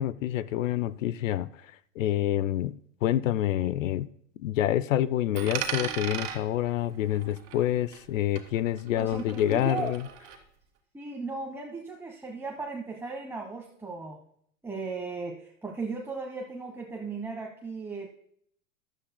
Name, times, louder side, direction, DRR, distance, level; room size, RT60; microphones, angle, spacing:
voice 1, 0.0-4.1 4.4-10.1, left 12 dB, 75° left, 0.6 m, -27 dB
Coin (dropping), 5.3-8.1 8.4-10.4, right 8 dB, 40° right, 2.2 m, -37 dB
voice 2, 9.0-9.9 10.9-14.2 14.6-18.1, right 4 dB, 5° right, 1.2 m, -36 dB
15.5 x 12.0 x 2.2 m
hypercardioid pair, 105°, 39 cm